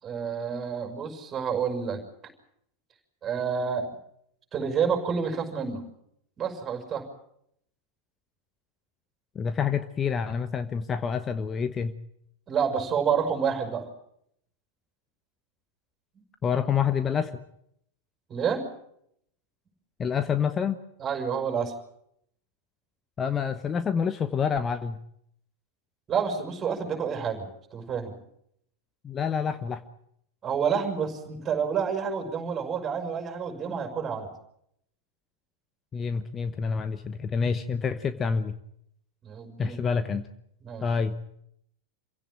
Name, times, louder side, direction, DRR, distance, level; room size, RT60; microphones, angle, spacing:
voice 1, 0.0-2.0 3.2-3.9 4.5-5.8 6.4-7.1 12.5-13.9 18.3-18.6 21.0-21.7 26.1-28.2 30.4-34.3 39.2-39.8 40.6-40.8, right 6 dB, 25° right, 5 dB, 5.6 m, -29 dB
voice 2, 9.3-11.9 16.4-17.4 20.0-20.8 23.2-25.0 29.0-29.8 35.9-38.5 39.6-40.3 40.8-41.1, left 6 dB, 20° left, 11 dB, 1.0 m, -27 dB
27.5 x 16.5 x 8.9 m, 0.73 s
figure-of-eight pair, 90°, 0 cm